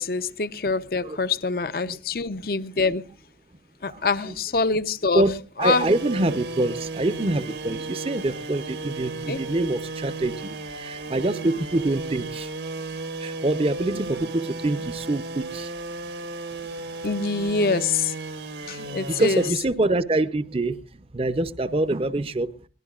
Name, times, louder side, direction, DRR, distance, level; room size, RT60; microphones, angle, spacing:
voice 1, 0.0-3.0 3.8-5.3 5.6-5.9 9.3-9.4 17.0-18.1 18.7-19.5, left 4 dB, 55° left, 0.7 m, -25 dB
voice 2, 3.8-4.3 5.1-5.3 5.6-12.5 13.2-15.7 18.8-20.8 21.1-22.5, right 2 dB, 35° right, 0.6 m, -25 dB
sound 1, 5.6-19.5, right 3 dB, 85° right, 1.8 m, -34 dB
23.0 x 19.0 x 2.4 m
head